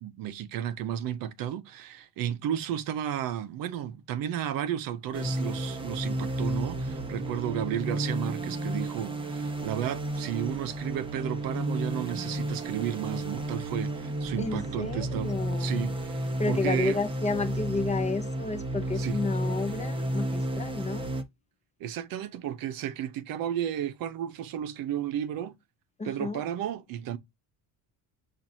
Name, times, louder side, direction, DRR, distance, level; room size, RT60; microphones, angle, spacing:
voice 1, 0.0-17.0 19.0-19.2 21.8-25.6 26.0-27.2, right 10 dB, 60° right, 0.7 m, -33 dB
sound 1, 5.1-21.2, right 1 dB, 15° right, 0.8 m, -32 dB
voice 2, 14.0-15.8 16.4-21.1 26.0-26.4, left 4 dB, 20° left, 0.6 m, -32 dB
7.4 x 2.5 x 2.6 m
cardioid pair, 170°, 38 cm